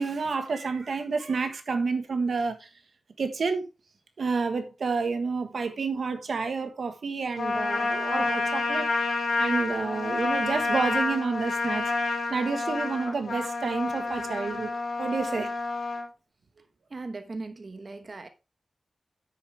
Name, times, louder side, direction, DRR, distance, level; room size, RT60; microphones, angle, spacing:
voice 1, 0.0-2.7 3.2-3.7 4.2-11.9 12.3-14.7 15.0-15.5, right 4 dB, 75° right, 1.4 m, -29 dB
Trumpet, 7.4-16.1, left 3 dB, 80° left, 3.3 m, -29 dB
voice 2, 16.9-18.3, right 3 dB, 45° right, 1.1 m, -38 dB
9.8 x 8.2 x 3.4 m
wide cardioid pair, 100°, 0 cm